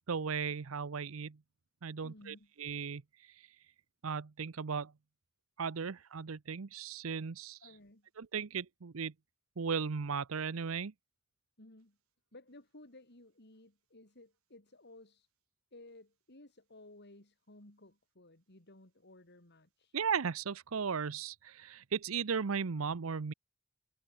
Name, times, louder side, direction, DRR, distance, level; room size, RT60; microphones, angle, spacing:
voice 1, 0.1-1.4 1.8-3.0 4.0-4.9 5.6-7.6 8.2-9.1 9.6-10.9 19.9-23.3, right 6 dB, 80° right, 0.7 m, -36 dB
voice 2, 2.0-2.5 7.6-8.1 11.6-12.0 12.3-15.3 15.7-20.0, left 2 dB, 55° left, 4.3 m, -57 dB
head